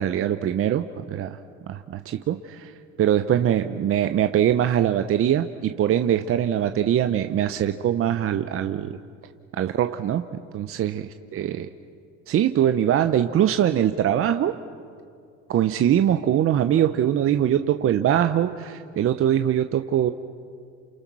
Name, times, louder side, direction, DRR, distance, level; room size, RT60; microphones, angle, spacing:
voice 1, 0.0-1.4 1.7-2.7 3.0-9.0 9.5-10.2 10.5-11.0 11.3-11.7 12.3-14.6 15.5-20.1, right 10 dB, 40° right, 8 dB, 0.9 m, -22 dB
29.5 x 28.5 x 6.3 m, 2.3 s
supercardioid pair, 95°, 34 cm